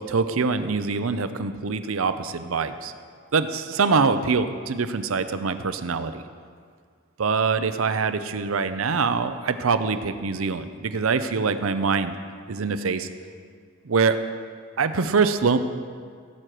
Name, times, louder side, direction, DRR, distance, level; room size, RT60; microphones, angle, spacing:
voice 1, 0.0-2.9 3.3-6.2 7.2-12.1 12.5-13.1 13.8-14.2 14.8-15.6, right 4 dB, 75° right, 11 dB, 0.6 m, -24 dB
17.0 x 7.7 x 5.0 m, 2.1 s
head